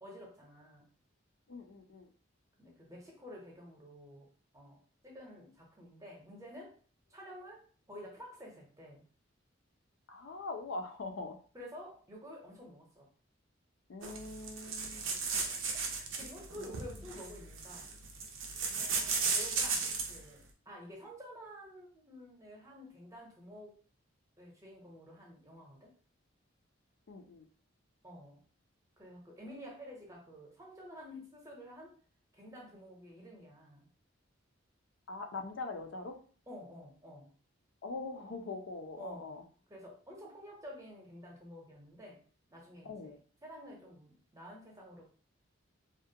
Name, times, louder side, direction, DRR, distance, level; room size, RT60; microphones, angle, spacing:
voice 1, 0.0-0.9 2.6-4.8 5.0-6.7 7.1-9.0 11.5-13.1 15.3-18.0 18.7-23.8 24.4-25.9 28.0-28.4 29.0-31.9 32.3-33.9 36.5-37.3 39.0-39.4 39.7-42.2 42.5-43.1 43.4-45.0, equal, 15° right, -2 dB, 0.7 m, -50 dB
voice 2, 1.5-2.1 10.1-11.4 13.9-15.2 16.7-16.8 18.7-18.8 27.1-27.5 35.1-36.2 37.8-39.4 42.8-43.2, left 3 dB, 70° left, 6 dB, 0.4 m, -42 dB
sound 1, 14.0-20.2, right 4 dB, 75° right, 0.5 m, -36 dB
2.4 x 2.1 x 2.7 m, 0.42 s
head